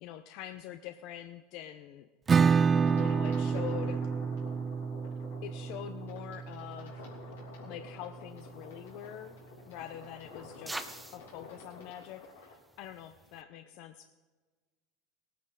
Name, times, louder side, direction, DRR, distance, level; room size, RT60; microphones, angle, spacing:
voice 1, 0.0-2.1 2.9-4.0 5.4-7.0 7.6-9.4 9.7-14.1, left 11 dB, 60° left, 8 dB, 0.6 m, -44 dB
Acoustic guitar / Strum, 2.3-7.7, right 5 dB, 25° right, 0.3 m, -29 dB
sound 1, 2.7-12.6, left 3 dB, 90° left, 2.9 m, -50 dB
sound 2, 8.3-13.4, right 1 dB, 5° right, 0.8 m, -48 dB
18.5 x 9.4 x 3.9 m, 1.4 s
hypercardioid pair, 95°, 0 cm